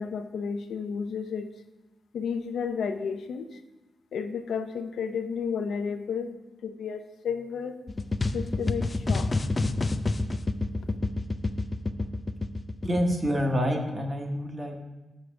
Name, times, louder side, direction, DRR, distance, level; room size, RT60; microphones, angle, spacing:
voice 1, 0.0-1.5 2.1-3.6 4.1-6.3 6.6-7.8 8.3-9.3, left 6 dB, 75° left, 7 dB, 0.6 m, -32 dB
sound 1, 7.9-13.5, left 2 dB, 25° left, 0.4 m, -28 dB
voice 2, 12.8-14.8, equal, 20° right, 3 dB, 0.9 m, -27 dB
7.0 x 6.5 x 6.1 m, 1.1 s
wide cardioid pair, 180°, 0 cm